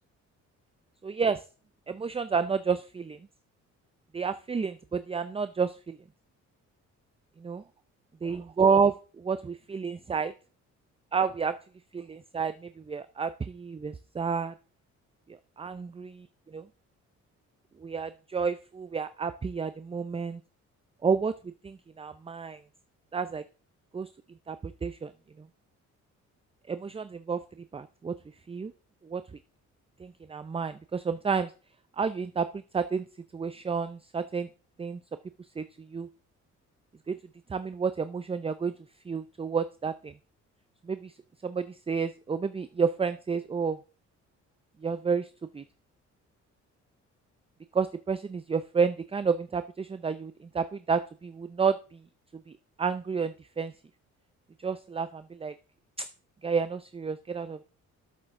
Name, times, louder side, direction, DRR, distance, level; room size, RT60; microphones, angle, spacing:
voice 1, 1.0-1.4 1.9-3.2 4.1-6.0 7.4-7.6 8.2-9.4 9.7-10.3 11.1-11.5 11.9-14.5 15.6-16.1 16.5-16.6 17.8-20.4 21.0-21.3 21.6-22.6 23.1-23.4 23.9-24.1 24.5-25.1 26.7-27.4 27.7-28.1 28.5-28.7 29.0-29.2 30.0-31.5 32.0-33.0 33.3-34.5 34.8-35.0 35.6-35.7 35.9-36.1 37.1-37.2 37.5-38.7 39.1-40.1 40.9-41.1 41.4-43.8 44.8-45.3 45.5-45.6 47.7-52.0 52.8-53.7 54.6-55.5 56.4-57.6, right 5 dB, 20° right, 12 dB, 0.5 m, -30 dB
12.5 x 7.6 x 3.7 m, 0.35 s
cardioid pair, 90°, 30 cm